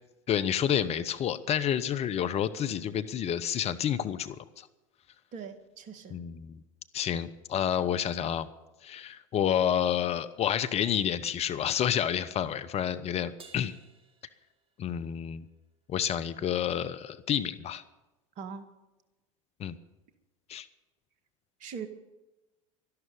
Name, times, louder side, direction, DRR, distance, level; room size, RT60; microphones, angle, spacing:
voice 1, 0.3-4.7 6.1-6.6 6.9-8.5 8.8-13.7 14.8-15.4 15.9-17.8 19.6-19.8 20.5-20.7, left 9 dB, 40° left, 13 dB, 1.0 m, -29 dB
voice 2, 5.3-6.2 18.4-18.7 21.6-21.9, right 6 dB, 50° right, 9 dB, 2.0 m, -41 dB
Crash cymbal, 13.4-15.1, right 4 dB, 30° right, 2.1 m, -56 dB
12.5 x 12.0 x 8.6 m, 1.0 s
hypercardioid pair, 80°, 17 cm